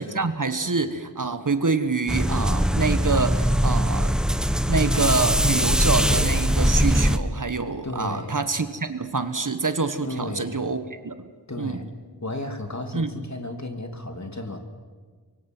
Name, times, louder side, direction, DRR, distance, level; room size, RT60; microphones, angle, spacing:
voice 1, 0.0-4.1 4.7-11.3 11.6-11.8 12.9-13.1, right 4 dB, 45° right, 10 dB, 1.4 m, -26 dB
sound 1, 2.1-7.2, equal, ahead, 1.1 m, -21 dB
voice 2, 7.8-8.4 10.0-10.6 11.5-11.8 12.2-14.7, left 1 dB, 40° left, 5 dB, 2.7 m, -33 dB
24.5 x 23.5 x 6.1 m, 1.5 s
wide cardioid pair, 45°, 43 cm